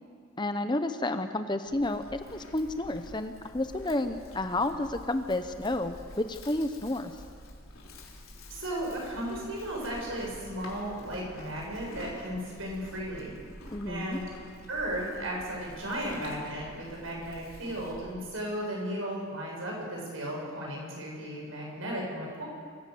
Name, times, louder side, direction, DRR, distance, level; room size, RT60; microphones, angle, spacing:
voice 1, 0.4-7.1 13.7-14.2, left 2 dB, 20° left, 9 dB, 0.8 m, -31 dB
Livestock farm animals working animals, 1.7-18.2, left 1 dB, 75° left, 3.8 m, -48 dB
voice 2, 8.5-13.3 13.9-14.2 14.7-22.5, right 1 dB, 70° right, -2 dB, 7.5 m, -35 dB
25.0 x 16.0 x 7.8 m, 2.1 s
head